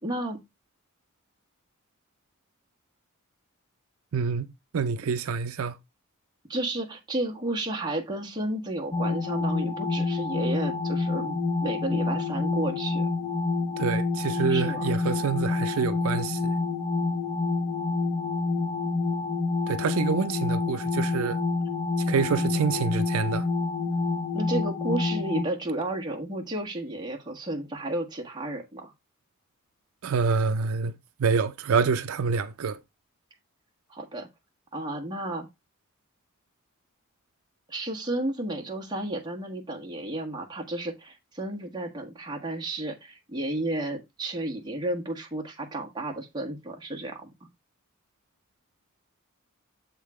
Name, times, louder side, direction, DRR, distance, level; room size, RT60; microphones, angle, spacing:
voice 1, 0.0-0.4 6.5-13.1 14.5-14.8 24.3-28.9 33.9-34.3 34.7-35.5 37.7-47.3, right 1 dB, 20° right, 1.4 m, -32 dB
voice 2, 4.1-4.5 4.7-5.8 13.8-16.5 19.7-21.4 22.1-23.5 30.0-30.9 31.2-32.8, right 5 dB, 75° right, 0.5 m, -26 dB
sound 1, 8.9-25.4, left 3 dB, 20° left, 0.8 m, -28 dB
7.3 x 3.7 x 4.7 m
head